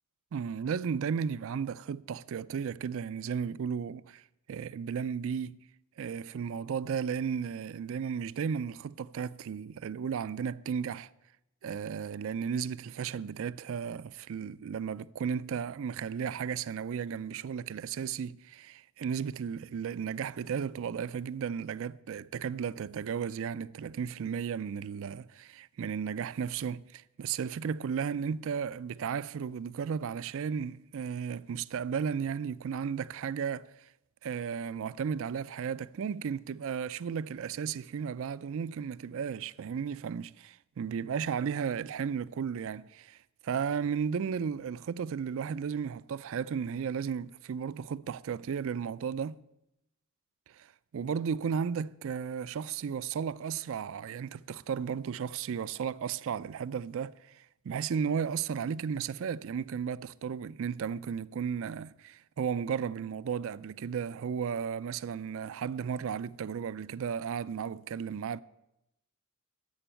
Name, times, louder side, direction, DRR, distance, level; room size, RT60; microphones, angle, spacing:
voice 1, 0.3-4.2 4.5-5.6 6.0-11.1 11.6-33.9 34.2-43.2 43.4-49.4 50.5-68.4, right 7 dB, 65° right, 0.4 m, -34 dB
11.5 x 7.0 x 8.9 m
head